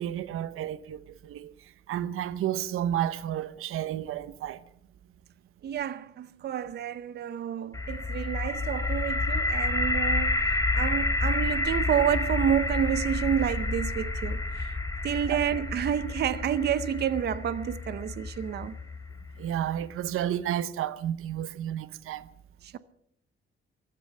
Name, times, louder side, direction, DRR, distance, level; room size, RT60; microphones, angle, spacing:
voice 1, 0.0-1.5 1.9-4.6 15.3-15.4 19.4-22.3, right 11 dB, 85° right, 0.8 m, -31 dB
voice 2, 5.6-14.7 15.0-18.7 22.6-22.8, right 9 dB, 50° right, 0.7 m, -29 dB
sound 1, 7.7-19.6, left 2 dB, 15° left, 1.9 m, -29 dB
15.5 x 13.5 x 6.6 m
cardioid pair, 165°, 21 cm